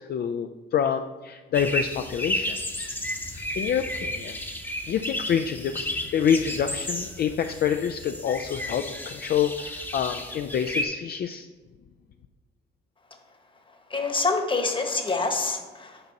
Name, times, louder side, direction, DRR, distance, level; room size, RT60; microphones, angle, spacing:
voice 1, 0.0-2.9 3.3-4.4 4.9-5.9 6.1-11.5, left 8 dB, 50° left, 7 dB, 0.4 m, -27 dB
sound 1, 1.5-10.8, left 1 dB, 10° left, 0.9 m, -33 dB
voice 2, 13.9-16.0, left 3 dB, 25° left, 5 dB, 1.2 m, -26 dB
6.8 x 4.1 x 5.8 m, 1.3 s
cardioid pair, 90°, 20 cm